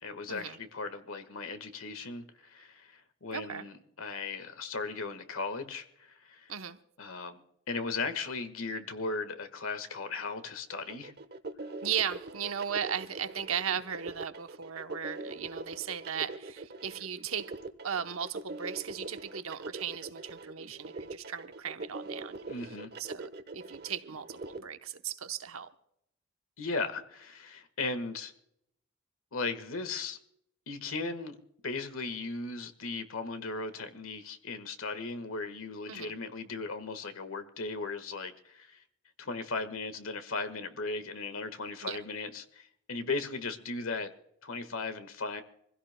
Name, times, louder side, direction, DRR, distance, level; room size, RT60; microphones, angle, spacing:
voice 1, 0.0-6.5 7.0-7.4 7.7-11.1 22.5-22.9 26.6-28.3 29.3-30.2 30.7-31.4 31.6-38.8 39.2-44.1 44.4-45.4, left 3 dB, 85° left, 10 dB, 1.5 m, -37 dB
voice 2, 3.3-3.7 6.5-6.8 11.8-17.5 17.8-22.4 23.0-25.7 35.9-36.1 41.8-42.0, right 8 dB, 90° right, 9 dB, 0.9 m, -36 dB
sound 1, 10.9-24.6, right 3 dB, 50° right, 0.9 m, -42 dB
26.0 x 16.0 x 2.2 m, 0.76 s
head